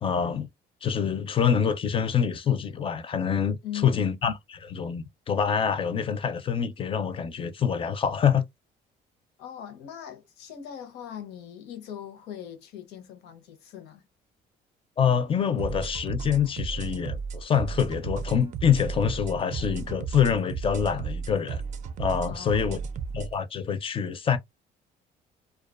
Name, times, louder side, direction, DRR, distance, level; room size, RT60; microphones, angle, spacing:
voice 1, 0.0-0.5 0.8-3.6 3.8-8.4 15.0-21.6 22.0-22.8 23.1-24.4, left 7 dB, 30° left, 0.4 m, -26 dB
voice 2, 3.6-4.2 9.4-14.1 22.3-22.8, left 9 dB, 85° left, 0.7 m, -40 dB
sound 1, 15.6-23.3, right 6 dB, 45° right, 0.4 m, -34 dB
2.3 x 2.3 x 2.4 m
cardioid pair, 110°, 17 cm